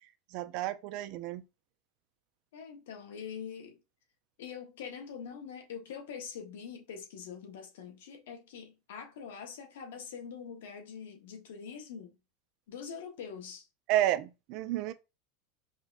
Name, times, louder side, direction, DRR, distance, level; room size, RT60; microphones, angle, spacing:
voice 1, 0.3-1.4 13.9-14.9, right 13 dB, 55° right, 0.3 m, -31 dB
voice 2, 2.5-3.8 4.4-12.1 12.7-13.6, left 7 dB, 85° left, 1.0 m, -44 dB
5.0 x 2.1 x 2.4 m
supercardioid pair, 140°, 0 cm